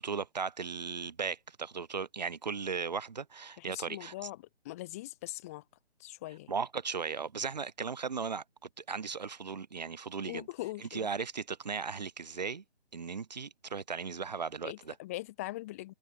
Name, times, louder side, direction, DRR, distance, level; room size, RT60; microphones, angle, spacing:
voice 1, 0.0-4.3 6.5-8.4 8.8-10.5 10.8-12.6 12.9-14.9, right 5 dB, 40° right, 5.2 m, -37 dB
voice 2, 3.6-4.4 4.6-5.6 6.0-6.5 10.3-11.1 14.6-15.9, left 17 dB, 15° left, 6.3 m, -41 dB
hypercardioid pair, 175°, 34 cm